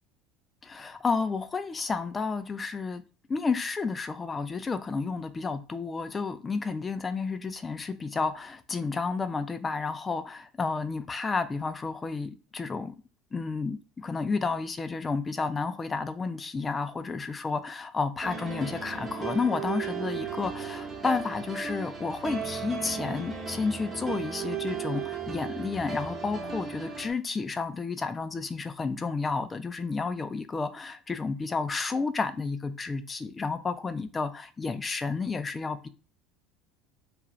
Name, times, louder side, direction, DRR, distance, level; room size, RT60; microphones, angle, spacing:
voice 1, 0.6-3.0 3.3-12.9 13.3-35.9, left 4 dB, 25° left, 0.4 m, -31 dB
sound 1, 18.2-27.1, right 6 dB, 30° right, 1.0 m, -35 dB
2.5 x 2.3 x 3.1 m
hypercardioid pair, 80°, 0 cm